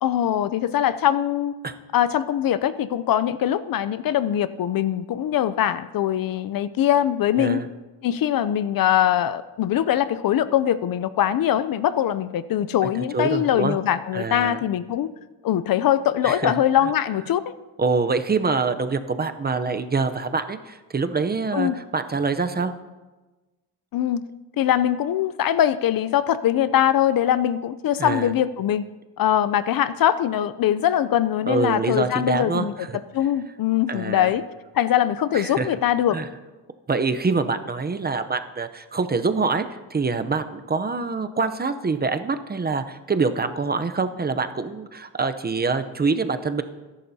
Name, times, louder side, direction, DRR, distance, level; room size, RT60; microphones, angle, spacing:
voice 1, 0.0-1.5 1.9-7.6 8.0-15.1 15.4-17.5 21.5-21.8 23.9-24.2 24.6-28.8 29.2-32.7 33.1-34.4 34.8-36.2, left 11 dB, 50° left, 15 dB, 0.5 m, -22 dB
voice 2, 13.1-13.8 14.1-14.6 16.2-16.5 17.8-22.7 28.0-28.3 31.5-33.0 33.9-34.3 35.3-35.7 36.1-36.3 36.9-39.6 39.9-46.6, right 4 dB, 20° right, 9 dB, 0.6 m, -25 dB
21.5 x 11.5 x 2.8 m, 1.2 s
cardioid pair, 115°, 44 cm